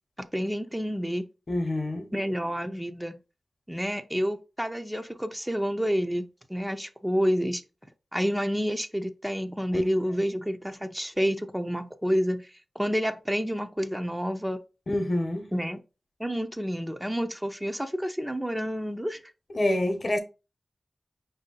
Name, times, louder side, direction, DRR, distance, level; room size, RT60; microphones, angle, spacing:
voice 1, 0.3-1.3 2.1-3.2 3.7-7.6 8.1-14.6 15.5-15.8 16.2-19.2, equal, 10° right, 0.6 m, -29 dB
voice 2, 1.5-2.1 9.7-9.8 14.9-15.5 19.5-20.2, left 1 dB, 55° left, 0.8 m, -27 dB
4.6 x 2.7 x 3.7 m
cardioid pair, 50°, 0 cm